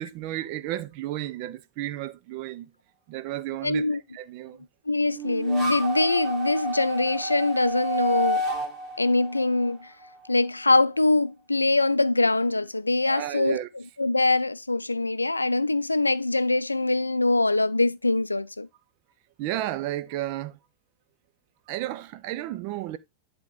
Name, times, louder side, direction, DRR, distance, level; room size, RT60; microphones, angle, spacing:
voice 1, 0.0-2.7 3.1-3.9 4.1-4.6 13.1-13.7 19.4-20.6 21.7-23.0, right 14 dB, 45° right, 0.6 m, -32 dB
voice 2, 3.6-4.0 4.9-8.4 9.0-9.9 10.3-18.7, left 2 dB, 80° left, 0.3 m, -23 dB
sound 1, 5.1-10.3, right 1 dB, 25° right, 2.5 m, -31 dB
10.5 x 3.7 x 3.9 m
figure-of-eight pair, 90°, 0 cm